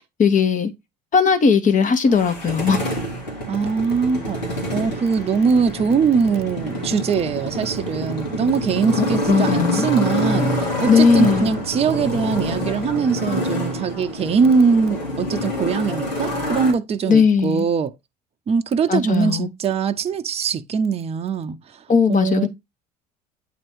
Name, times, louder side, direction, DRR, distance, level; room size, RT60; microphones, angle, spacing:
voice 1, 0.2-0.7 1.1-2.8 8.9-9.9 10.9-11.5 17.1-17.7 18.9-19.5 21.9-22.5, left 5 dB, 35° left, 1.3 m, -17 dB
Motorcycle, 2.1-16.7, equal, 85° left, 2.2 m, -26 dB
voice 2, 3.5-17.9 18.5-21.8 22.1-22.5, right 5 dB, 30° right, 0.7 m, -22 dB
8.6 x 3.0 x 4.6 m
hypercardioid pair, 65°, 21 cm